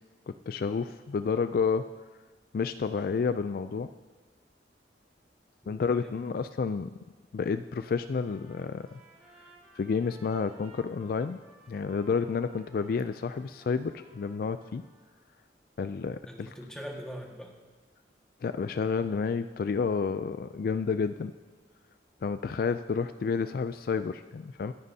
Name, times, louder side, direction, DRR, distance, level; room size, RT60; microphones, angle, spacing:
voice 1, 0.3-1.9 2.5-3.9 5.7-6.9 7.3-9.0 9.4-9.5 9.7-11.4 11.7-14.8 15.8-16.5 18.4-21.3 22.2-24.7, left 5 dB, 55° left, 11 dB, 0.3 m, -30 dB
voice 2, 5.6-6.3 16.2-17.5, equal, 5° left, -1 dB, 1.7 m, -43 dB
Trumpet, 8.3-15.2, right 2 dB, 15° right, 5.2 m, -57 dB
24.5 x 10.5 x 2.8 m, 1.3 s
head